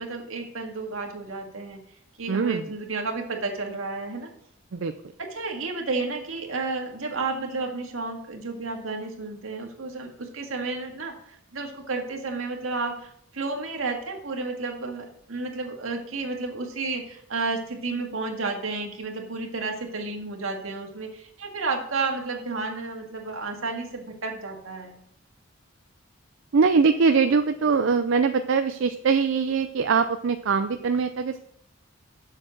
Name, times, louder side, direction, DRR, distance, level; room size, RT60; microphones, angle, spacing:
voice 1, 0.0-1.8 2.2-4.3 5.2-25.0, right 3 dB, 85° right, 2 dB, 1.9 m, -32 dB
voice 2, 2.3-2.7 4.7-4.9 26.5-31.4, right 5 dB, 65° right, 8 dB, 0.4 m, -22 dB
7.5 x 6.5 x 6.4 m, 0.71 s
head